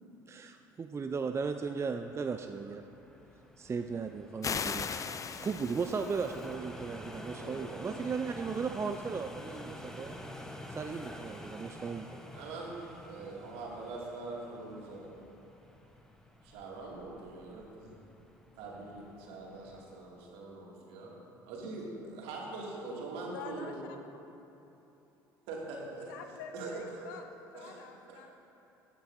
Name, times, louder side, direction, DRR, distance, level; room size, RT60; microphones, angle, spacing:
voice 1, 0.3-2.8 3.6-4.9 5.3-10.2 10.7-12.3, right 5 dB, 25° right, 7 dB, 0.4 m, -36 dB
sound 1, 1.8-20.1, left 1 dB, 5° left, 1.0 m, -49 dB
sound 2, 4.4-6.5, left 6 dB, 30° left, 0.5 m, -37 dB
voice 2, 7.3-8.0 12.3-15.1 16.4-18.0 18.6-21.1 21.5-23.8 25.5-26.1 26.5-27.1 27.5-27.8 28.1-28.3, right 3 dB, 65° right, -3 dB, 2.3 m, -43 dB
voice 3, 23.3-24.1 26.1-27.3 27.5-28.3, left 6 dB, 75° left, 6 dB, 0.8 m, -46 dB
15.0 x 9.1 x 2.7 m, 3.0 s
hypercardioid pair, 60°, 11 cm